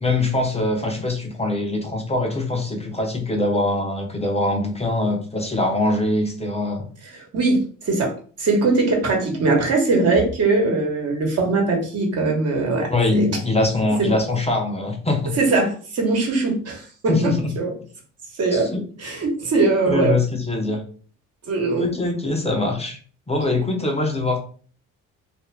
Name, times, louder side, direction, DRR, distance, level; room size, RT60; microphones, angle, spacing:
voice 1, 0.0-6.9 12.9-15.3 17.1-17.5 18.5-18.8 19.9-20.8 21.8-23.0 23.3-24.4, left 2 dB, 20° left, 2 dB, 0.7 m, -23 dB
voice 2, 7.3-13.3 14.0-14.1 15.4-17.3 17.6-17.7 18.4-18.7 19.0-20.1 21.5-21.9, right 3 dB, 50° right, 1 dB, 1.1 m, -21 dB
2.4 x 2.3 x 3.3 m, 0.41 s
supercardioid pair, 75°, 31 cm